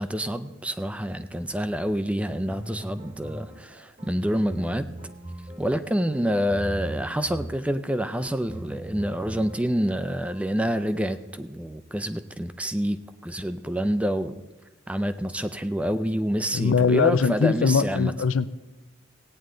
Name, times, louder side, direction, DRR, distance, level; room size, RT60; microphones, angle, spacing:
voice 1, 0.0-4.9 5.6-14.4 14.9-18.1, equal, 5° right, 10 dB, 0.4 m, -27 dB
sound 1, 2.5-10.4, right 1 dB, 30° right, 1.1 m, -40 dB
voice 2, 16.5-18.5, left 5 dB, 75° left, 14 dB, 0.5 m, -21 dB
17.0 x 9.3 x 3.8 m, 1.1 s
head